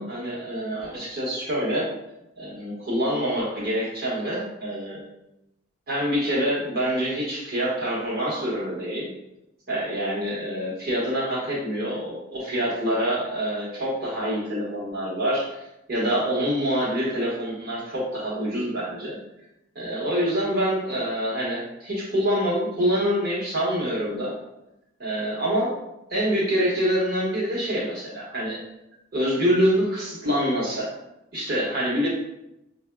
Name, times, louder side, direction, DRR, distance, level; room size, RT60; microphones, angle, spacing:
voice 1, 0.0-1.8 2.4-5.0 5.9-9.1 9.7-15.6 15.9-19.2 19.7-24.4 25.0-25.7 26.1-28.6 29.1-30.9 31.3-32.1, equal, 50° right, -6 dB, 1.4 m, -26 dB
5.2 x 2.6 x 2.3 m, 0.88 s
head